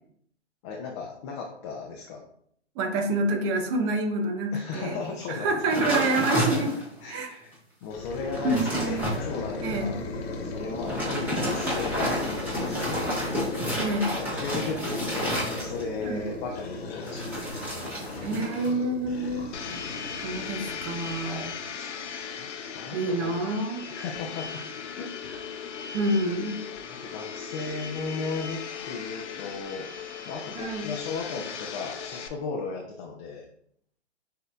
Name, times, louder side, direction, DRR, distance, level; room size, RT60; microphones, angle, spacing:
voice 1, 0.6-2.2 4.5-6.6 7.0-7.5 7.8-10.0 10.4-13.2 13.7-17.6 21.2-21.9 22.4-23.4 23.9-24.6 25.0-25.7 27.0-33.5, left 4 dB, 25° left, 0 dB, 0.4 m, -36 dB
voice 2, 2.8-5.0 5.3-6.7 7.1-7.4 8.4-9.0 9.6-9.9 13.8-14.2 16.0-16.2 18.2-19.5 20.2-21.5 22.9-23.8 25.9-26.6 30.5-30.9, right 2 dB, 25° right, 4 dB, 0.6 m, -27 dB
sound 1, 5.7-7.0 7.5-7.6 8.1-9.2 10.7-16.0 17.0-18.7 19.0-19.4, equal, 5° right, 1.3 m, -30 dB
sound 2, 7.9-21.8, left 3 dB, 60° left, 1.2 m, -36 dB
Domestic sounds home sounds, 19.5-32.3, left 6 dB, 75° left, 0.7 m, -38 dB
6.1 x 2.7 x 2.4 m, 0.67 s
hypercardioid pair, 130°, 35 cm